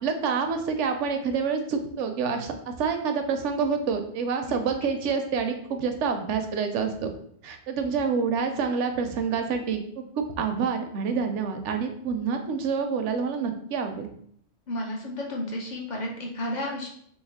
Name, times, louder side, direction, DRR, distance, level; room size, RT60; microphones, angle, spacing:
voice 1, 0.0-7.1 7.4-14.1, right 5 dB, 80° right, 6 dB, 0.9 m, -27 dB
voice 2, 14.7-16.9, left 1 dB, 50° left, 0 dB, 0.6 m, -32 dB
3.1 x 2.9 x 3.5 m, 0.66 s
omnidirectional pair, 1.2 m